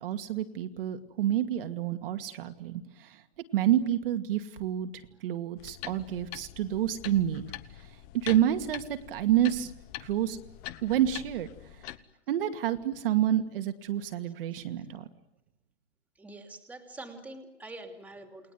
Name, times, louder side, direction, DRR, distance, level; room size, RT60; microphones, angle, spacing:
voice 1, 0.0-3.2 3.5-7.4 8.1-9.7 10.0-10.4 10.8-11.5 12.3-15.1, right 11 dB, 50° right, 7 dB, 2.3 m, -28 dB
sound 1, 5.6-12.0, left 14 dB, 25° left, 1.2 m, -44 dB
voice 2, 16.2-18.5, right 2 dB, 5° right, 6 dB, 3.0 m, -45 dB
29.0 x 21.0 x 9.4 m, 0.89 s
hypercardioid pair, 160°, 36 cm